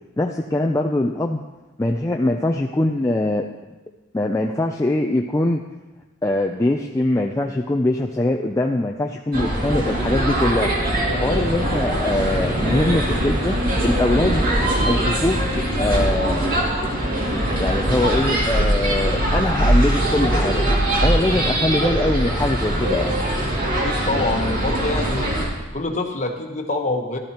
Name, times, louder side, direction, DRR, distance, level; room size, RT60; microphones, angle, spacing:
voice 1, 0.2-1.4 1.8-3.5 4.1-5.6 6.2-10.7 11.2-13.6 13.8-14.5 14.8-16.5 17.6-20.6 21.0-23.2, left 1 dB, 15° left, 1 dB, 0.4 m, -22 dB
sound 1, 9.3-25.5, right 1 dB, 45° right, 2.3 m, -21 dB
voice 2, 23.8-25.3 25.7-27.2, left 2 dB, 35° left, 3 dB, 1.1 m, -25 dB
13.5 x 12.5 x 2.9 m, 1.1 s
head